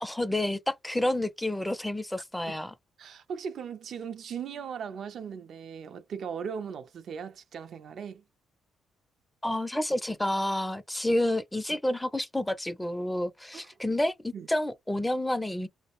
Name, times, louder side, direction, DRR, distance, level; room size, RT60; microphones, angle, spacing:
voice 1, 0.0-2.7 9.4-15.7, left 1 dB, 5° left, 0.4 m, -29 dB
voice 2, 3.0-8.2 13.5-13.7 14.3-14.5, right 7 dB, 60° right, 0.3 m, -38 dB
2.3 x 2.0 x 2.9 m
cardioid pair, 90°, 0 cm